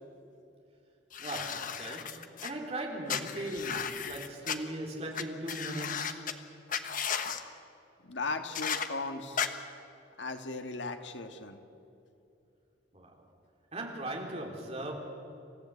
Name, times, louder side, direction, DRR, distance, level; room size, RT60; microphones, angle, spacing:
sound 1, 1.1-2.5 3.1-4.6 5.1-5.2 5.5-6.3 6.7-7.4 8.5-8.9 9.4-9.5, left 7 dB, 45° left, 1.2 m, -34 dB
voice 1, 1.2-6.3 12.9-13.1 13.7-14.9, right 1 dB, 35° right, 0 dB, 3.8 m, -38 dB
voice 2, 8.1-9.4 10.2-11.6, left 3 dB, 70° left, 7 dB, 1.7 m, -37 dB
28.0 x 15.5 x 8.4 m, 2.7 s
head